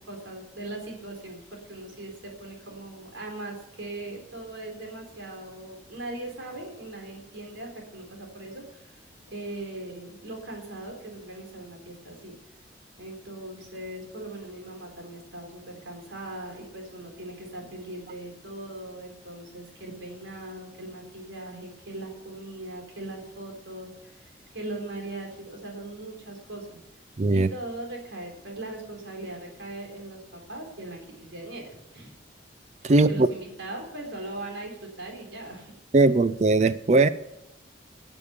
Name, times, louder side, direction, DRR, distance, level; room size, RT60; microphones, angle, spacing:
voice 1, 0.0-12.3 13.0-26.8 27.3-32.2 33.1-35.7, right 2 dB, 85° right, 3.9 m, -40 dB
voice 2, 27.2-27.5 32.8-33.3 35.9-37.1, right 2 dB, 35° right, 0.4 m, -19 dB
14.0 x 6.9 x 8.1 m
head